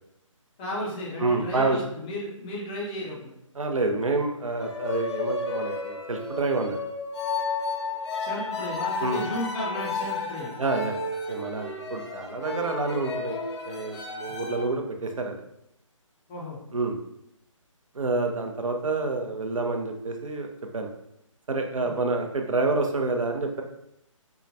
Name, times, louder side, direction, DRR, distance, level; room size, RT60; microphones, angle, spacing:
voice 1, 0.6-3.3 8.2-10.6 16.3-16.6 21.8-22.0, left 1 dB, 15° left, -4 dB, 0.5 m, -34 dB
voice 2, 1.2-1.8 3.6-6.8 9.0-9.2 10.6-13.4 13.6-15.4 16.7-17.0 17.9-20.5 20.7-20.9 21.5-23.6, right 3 dB, 75° right, 4 dB, 0.6 m, -28 dB
sound 1, 4.6-14.7, left 3 dB, 55° left, 0.8 m, -32 dB
4.5 x 2.2 x 2.6 m, 0.78 s
figure-of-eight pair, 145°, 17 cm